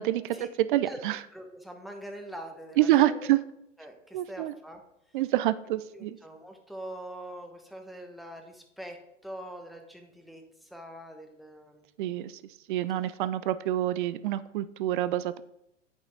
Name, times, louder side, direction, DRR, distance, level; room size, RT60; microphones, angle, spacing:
voice 1, 0.0-1.2 2.8-3.4 4.1-4.5 5.1-6.2 12.0-12.3 12.7-15.4, right 14 dB, 45° right, 15 dB, 0.4 m, -27 dB
voice 2, 1.3-3.3 3.8-4.8 5.9-9.0 9.2-11.8, right 1 dB, ahead, 3 dB, 1.0 m, -43 dB
8.9 x 5.5 x 3.9 m, 0.83 s
hypercardioid pair, 105°, 38 cm